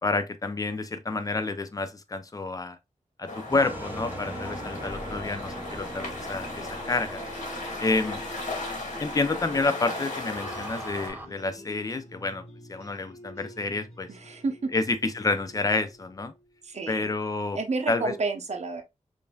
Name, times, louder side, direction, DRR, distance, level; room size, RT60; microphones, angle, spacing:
voice 1, 0.0-2.8 3.2-7.2 7.8-8.2 9.0-12.4 12.7-14.1 14.7-16.3 16.9-17.6 17.9-18.1, left 3 dB, 30° left, 0.5 m, -29 dB
sound 1, 3.3-11.1, left 2 dB, 75° left, 1.6 m, -36 dB
sound 2, 3.5-11.2, right 1 dB, 15° right, 0.7 m, -41 dB
sound 3, 9.3-16.8, left 2 dB, 55° left, 1.5 m, -47 dB
voice 2, 14.1-14.7 16.6-17.2 17.5-18.8, right 3 dB, 60° right, 0.7 m, -30 dB
5.1 x 2.6 x 2.3 m
wide cardioid pair, 110°, 13 cm